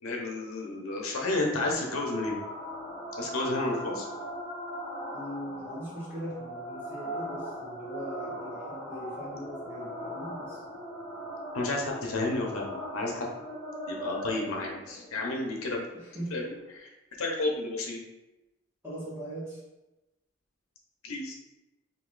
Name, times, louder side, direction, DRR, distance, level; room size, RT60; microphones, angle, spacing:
voice 1, 0.0-2.4 3.2-4.1 11.5-13.3 13.9-15.9 16.3-16.4 16.7-16.9 17.2-18.0 21.0-21.3, left 2 dB, 90° left, 0 dB, 0.7 m, -31 dB
sound 1, 1.7-16.7, equal, 20° left, 0.9 m, -39 dB
voice 2, 5.1-10.6 15.9-16.3 18.8-19.6, right 1 dB, 10° right, -9 dB, 1.2 m, -40 dB
3.0 x 2.7 x 3.8 m, 1.0 s
head